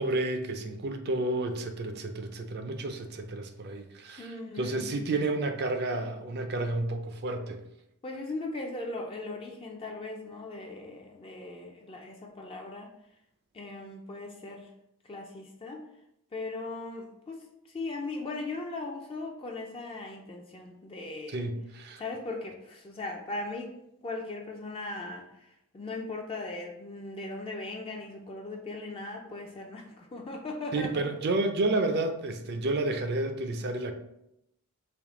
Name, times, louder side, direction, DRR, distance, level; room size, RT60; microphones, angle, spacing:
voice 1, 0.0-7.6 21.3-22.0 30.7-33.9, right 2 dB, 45° right, 6 dB, 0.4 m, -31 dB
voice 2, 4.2-4.9 8.0-12.9 13.5-14.7 15.1-15.9 16.3-17.4 17.7-21.5 22.0-23.7 24.0-31.1, left 2 dB, 25° left, 1 dB, 0.3 m, -38 dB
3.5 x 2.6 x 3.6 m, 0.81 s
head